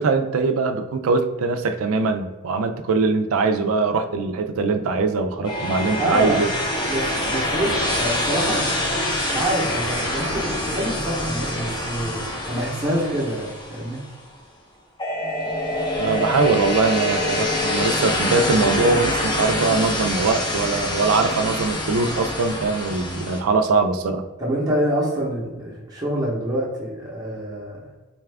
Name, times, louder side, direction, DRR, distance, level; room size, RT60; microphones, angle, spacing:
voice 1, 0.0-6.5 16.0-24.2, right 4 dB, 90° right, 7 dB, 0.4 m, -22 dB
sound 1, 5.4-14.3 15.0-23.4, left 1 dB, 20° left, 0.6 m, -25 dB
voice 2, 6.0-6.4 6.9-8.6 9.3-14.0 24.4-27.8, right 1 dB, 20° right, -6 dB, 0.7 m, -26 dB
4.1 x 2.3 x 3.3 m, 1.2 s
head